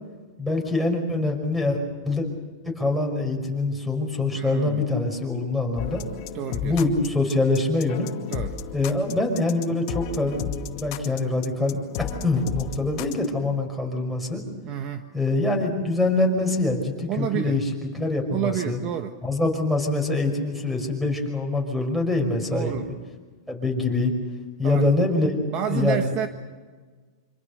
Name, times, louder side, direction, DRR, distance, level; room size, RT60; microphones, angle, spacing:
voice 1, 0.4-2.3 2.6-6.0 6.6-8.1 8.7-14.4 15.1-17.7 17.9-18.8 19.2-22.8 23.5-24.1 24.6-25.4 25.7-26.1, left 2 dB, ahead, 5 dB, 5.4 m, -24 dB
voice 2, 4.3-4.8 6.3-6.8 8.3-8.5 14.6-15.1 17.1-17.6 18.3-19.1 22.5-22.9 24.6-24.9 25.5-26.3, right 10 dB, 40° right, 7 dB, 1.4 m, -29 dB
sound 1, 5.8-13.3, left 8 dB, 50° left, 2.3 m, -33 dB
26.0 x 26.0 x 6.7 m, 1.4 s
hypercardioid pair, 130°, 2 cm